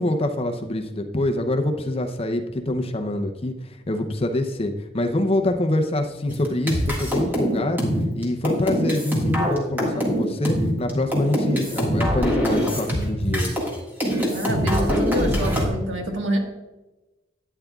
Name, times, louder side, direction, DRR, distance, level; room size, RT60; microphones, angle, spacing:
voice 1, 0.0-13.5, left 1 dB, 30° left, 6 dB, 0.6 m, -25 dB
sound 1, 6.3-13.8 14.0-15.7, equal, 10° right, 1.7 m, -23 dB
voice 2, 14.3-16.4, equal, 80° right, 2 dB, 1.6 m, -26 dB
12.5 x 9.1 x 2.4 m, 1.1 s
head